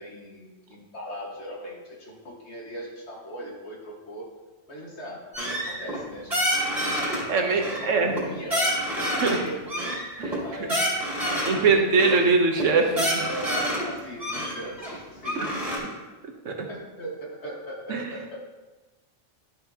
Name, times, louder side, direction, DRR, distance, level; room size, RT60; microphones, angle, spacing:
voice 1, 0.0-4.3 4.7-5.2 5.6-6.6 7.0-9.9 10.4-12.4 13.2-16.0 16.7-18.4, equal, 65° left, -2 dB, 1.9 m, -39 dB
sound 1, 5.3-6.0 6.3-7.2 7.6-8.2 8.5-9.4 9.7-11.6 12.0-12.2 12.6-12.7 12.9-13.9 14.2-15.8, equal, 30° right, 2.9 m, -27 dB
voice 2, 7.3-8.2 9.2-9.4 10.2-10.4 11.5-13.3 16.4-16.7 17.9-18.0, right 4 dB, 85° right, 3 dB, 1.3 m, -22 dB
12.0 x 5.6 x 2.8 m, 1.2 s
omnidirectional pair, 1.3 m